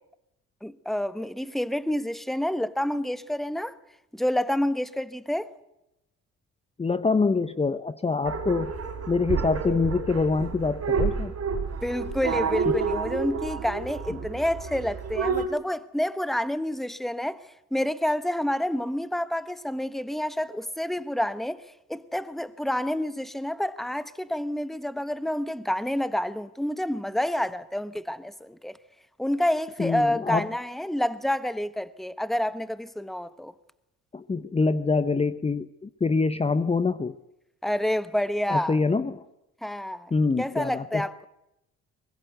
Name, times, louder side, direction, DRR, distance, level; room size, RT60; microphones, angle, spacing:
voice 1, 0.6-3.8 4.1-5.5 11.8-28.8 29.2-33.5 37.6-38.8 39.6-40.1 40.4-41.3, left 1 dB, ahead, 1.1 m, -28 dB
voice 2, 6.8-8.8 9.1-11.3 14.1-14.2 29.8-30.5 34.1-37.2 38.5-39.2 40.1-41.0, left 4 dB, 20° left, 0.8 m, -25 dB
sound 1, 8.2-15.5, right 5 dB, 55° right, 4.5 m, -29 dB
24.0 x 21.0 x 8.0 m
cardioid pair, 90°, 30 cm